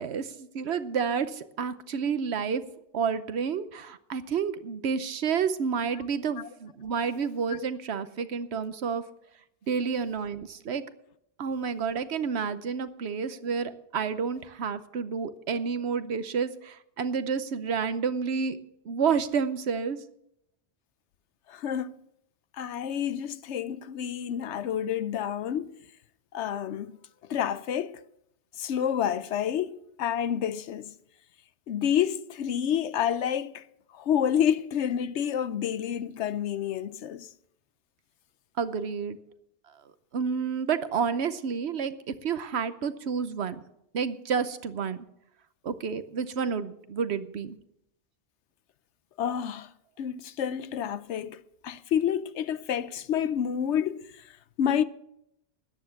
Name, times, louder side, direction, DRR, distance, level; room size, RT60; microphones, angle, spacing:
voice 1, 0.0-2.6 2.9-9.0 9.7-10.8 11.4-18.6 18.8-20.0 38.6-39.2 40.1-43.6 43.9-45.0 45.6-47.6, right 6 dB, 70° right, 1.1 m, -30 dB
voice 2, 21.5-21.9 22.6-25.8 26.3-27.0 27.3-28.0 28.6-30.9 31.7-33.6 33.9-37.3 49.2-49.7 50.0-54.2 54.6-54.8, left 9 dB, 85° left, 1.0 m, -29 dB
13.5 x 10.0 x 5.8 m
omnidirectional pair, 1.1 m